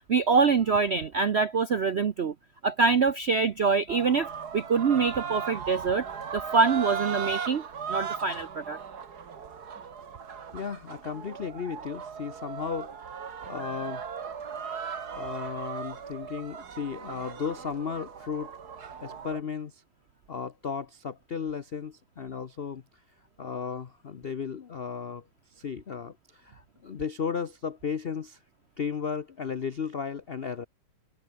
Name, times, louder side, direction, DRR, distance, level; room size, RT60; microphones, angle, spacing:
voice 1, 0.1-2.3 2.6-6.0 6.3-7.6 7.9-8.8, right 5 dB, 65° right, 0.6 m, -25 dB
sound 1, 3.9-19.4, right 6 dB, 50° right, 2.2 m, -37 dB
voice 2, 10.5-14.1 15.1-19.8 20.3-22.8 23.4-25.2 25.5-28.4 28.8-30.7, left 6 dB, 85° left, 0.5 m, -35 dB
omnidirectional pair, 2.3 m